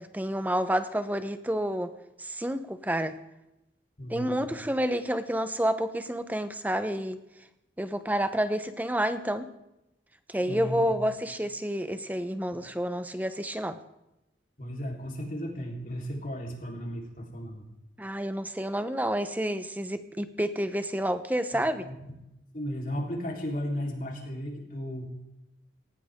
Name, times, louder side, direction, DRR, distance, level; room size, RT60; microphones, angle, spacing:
voice 1, 0.0-1.9 2.2-3.2 4.1-7.2 7.8-9.5 10.3-13.8 18.0-21.9, equal, 10° right, 10 dB, 0.9 m, -29 dB
voice 2, 4.0-4.5 10.4-10.9 12.5-12.6 14.6-17.6 21.5-22.1 22.5-25.1, equal, 45° left, -1 dB, 3.8 m, -35 dB
18.5 x 17.5 x 3.7 m, 0.89 s
head